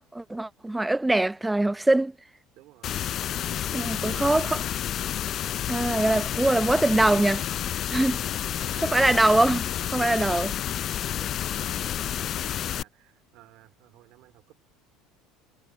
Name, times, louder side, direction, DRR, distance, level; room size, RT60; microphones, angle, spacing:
voice 1, 0.1-2.1 3.7-4.6 5.7-7.4 7.9-8.2 8.8-9.6 9.9-10.5, right 2 dB, 10° right, 0.7 m, -23 dB
voice 2, 2.5-3.0 3.3-4.8 8.1-14.6, right 18 dB, 65° right, 3.7 m, -51 dB
sound 1, 2.8-12.8, left 11 dB, 50° left, 0.4 m, -30 dB
hypercardioid pair, 85°, 0 cm